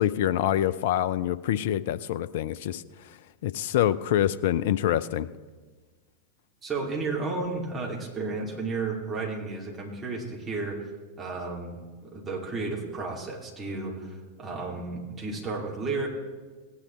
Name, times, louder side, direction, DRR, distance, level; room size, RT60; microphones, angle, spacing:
voice 1, 0.0-2.8 3.4-5.3, left 11 dB, 55° left, 15 dB, 0.4 m, -25 dB
voice 2, 6.6-10.9 11.2-16.1, right 3 dB, 20° right, -2 dB, 2.7 m, -33 dB
17.5 x 9.7 x 3.2 m, 1.4 s
figure-of-eight pair, 90°, 0 cm